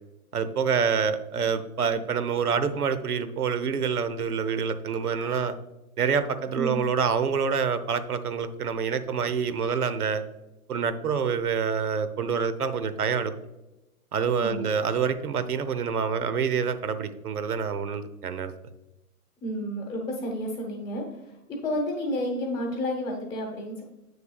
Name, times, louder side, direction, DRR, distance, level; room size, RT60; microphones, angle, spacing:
voice 1, 0.3-5.5 6.0-10.2 10.7-13.3 14.1-18.5, right 6 dB, 80° right, 12 dB, 0.9 m, -27 dB
voice 2, 14.4-14.9 19.4-23.8, equal, 10° left, -1 dB, 0.9 m, -31 dB
8.0 x 6.7 x 2.3 m, 0.99 s
hypercardioid pair, 135°, 44 cm